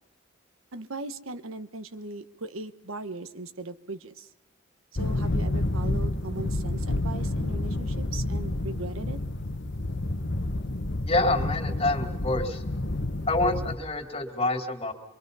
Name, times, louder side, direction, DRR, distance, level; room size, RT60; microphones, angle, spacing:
voice 1, 0.7-4.3 4.9-9.2, right 3 dB, 70° right, 11 dB, 1.0 m, -38 dB
sound 1, 5.0-13.8, left 1 dB, 55° left, 1.2 m, -29 dB
voice 2, 11.1-12.6 13.3-14.9, left 2 dB, 25° left, 4 dB, 2.9 m, -27 dB
25.0 x 24.0 x 5.4 m, 0.98 s
head